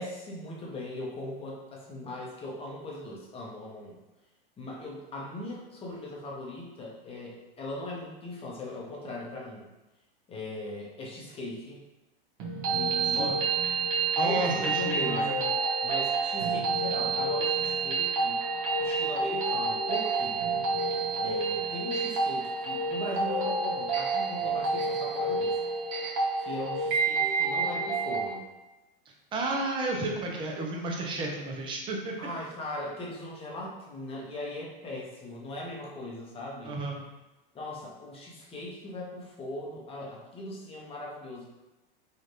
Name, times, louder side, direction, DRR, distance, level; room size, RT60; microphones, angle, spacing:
voice 1, 0.0-4.0 4.6-9.6 10.3-11.8 12.6-13.5 14.2-15.3 15.8-18.4 18.8-20.5 21.2-25.6 26.4-28.5 32.2-36.8 37.5-41.5, left 1 dB, 20° left, -3 dB, 0.8 m, -39 dB
sound 1, 12.4-28.4, right 3 dB, 55° right, 0.8 m, -29 dB
voice 2, 14.2-15.5 29.3-32.2 36.6-37.0, right 2 dB, 15° right, 0 dB, 0.5 m, -32 dB
3.1 x 2.4 x 2.7 m, 1.1 s
hypercardioid pair, 105°, 29 cm